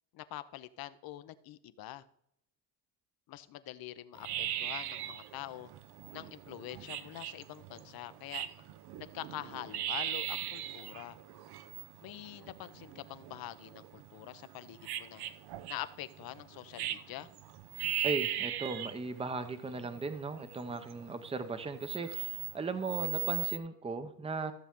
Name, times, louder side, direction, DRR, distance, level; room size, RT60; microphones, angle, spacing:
voice 1, 0.1-2.0 3.3-5.7 6.1-8.5 9.0-11.2 12.0-15.2 15.7-17.3, left 14 dB, 50° left, 14 dB, 0.8 m, -45 dB
sound 1, 4.2-23.6, right 12 dB, 60° right, 0.8 m, -39 dB
voice 2, 18.0-24.5, right 4 dB, 15° right, 10 dB, 0.9 m, -37 dB
14.5 x 7.0 x 3.7 m, 0.73 s
supercardioid pair, 100°, 44 cm